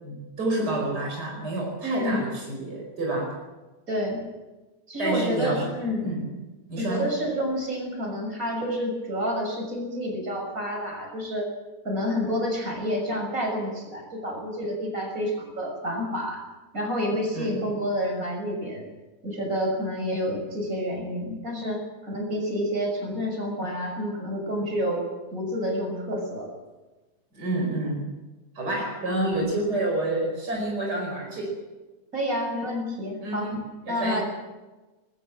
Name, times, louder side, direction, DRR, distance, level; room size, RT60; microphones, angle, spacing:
voice 1, 0.0-3.4 5.0-6.4 6.7-7.1 17.4-17.5 27.3-28.1 28.6-31.6 33.2-33.6 33.9-34.2, right 2 dB, 80° right, -1 dB, 5.5 m, -29 dB
voice 2, 1.8-2.3 3.9-4.2 4.9-6.1 6.8-11.5 11.8-16.4 16.7-18.9 19.2-25.0 25.3-26.5 32.1-33.5 33.9-34.2, equal, 55° right, 1 dB, 6.8 m, -29 dB
20.5 x 19.5 x 7.6 m, 1.1 s
omnidirectional pair, 1.7 m